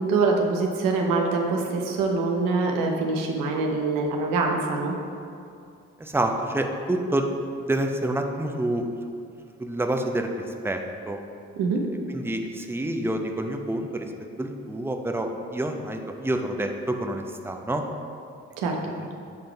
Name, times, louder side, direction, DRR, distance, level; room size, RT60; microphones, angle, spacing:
voice 1, 0.0-4.9 11.5-11.8 18.6-18.8, right 3 dB, 85° right, 1 dB, 0.8 m, -24 dB
voice 2, 6.0-7.3 7.6-8.9 9.6-11.2 12.1-14.1 14.4-17.8 19.0-19.1, right 1 dB, 5° right, 4 dB, 0.7 m, -28 dB
7.7 x 3.8 x 4.5 m, 2.5 s
hypercardioid pair, 45°, 33 cm